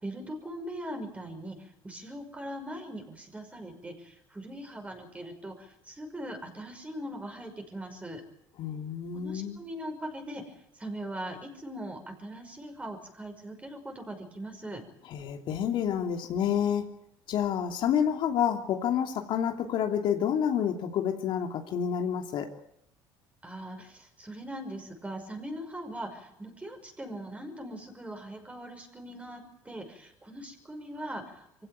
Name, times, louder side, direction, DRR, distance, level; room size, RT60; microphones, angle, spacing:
voice 1, 0.0-8.2 9.1-14.8 23.4-31.5, right 1 dB, 15° right, 5 dB, 5.7 m, -40 dB
voice 2, 8.6-9.6 15.1-16.8 17.3-22.5, left 8 dB, 60° left, 4 dB, 2.9 m, -28 dB
24.5 x 16.5 x 9.4 m, 0.79 s
cardioid pair, 110°, 9 cm